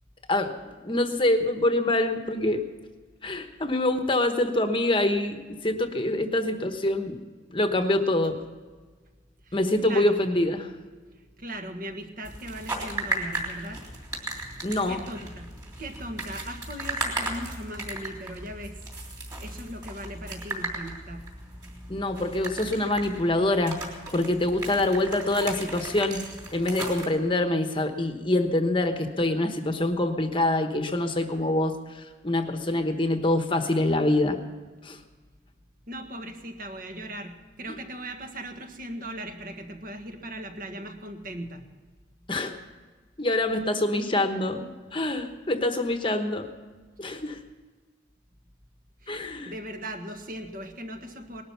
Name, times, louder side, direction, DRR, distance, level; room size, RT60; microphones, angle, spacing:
voice 1, 0.8-2.6 3.2-7.2 7.5-8.4 9.5-10.7 14.6-15.0 21.9-23.8 24.1-26.2 26.5-34.4 34.8-35.0 42.3-42.6 43.2-44.7 44.9-46.5 47.0-47.4 49.1-49.5, left 1 dB, 25° left, 6 dB, 1.1 m, -25 dB
voice 2, 9.4-10.1 11.4-13.8 14.9-15.5 15.8-18.8 19.4-21.3 35.9-41.6 49.0-51.4, right 1 dB, 45° right, 5 dB, 1.6 m, -38 dB
sound 1, 12.2-27.0, right 2 dB, 20° right, 3.1 m, -36 dB
19.0 x 12.5 x 5.8 m, 1.4 s
head